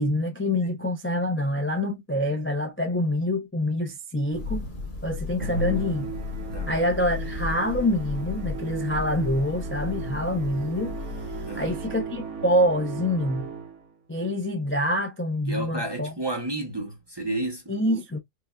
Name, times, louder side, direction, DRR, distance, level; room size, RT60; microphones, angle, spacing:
voice 1, 0.0-4.7 5.0-6.1 6.7-10.9 11.5-13.5 14.1-16.1 17.7-18.2, left 1 dB, 20° left, 0.3 m, -26 dB
Thunder, 4.3-12.2, left 4 dB, 45° left, 1.1 m, -35 dB
Musical instrument, 5.4-13.9, right 4 dB, 70° right, 1.1 m, -36 dB
voice 2, 11.5-11.8 15.5-17.8, right 2 dB, 25° right, 0.6 m, -31 dB
4.7 x 2.3 x 2.2 m
omnidirectional pair, 1.3 m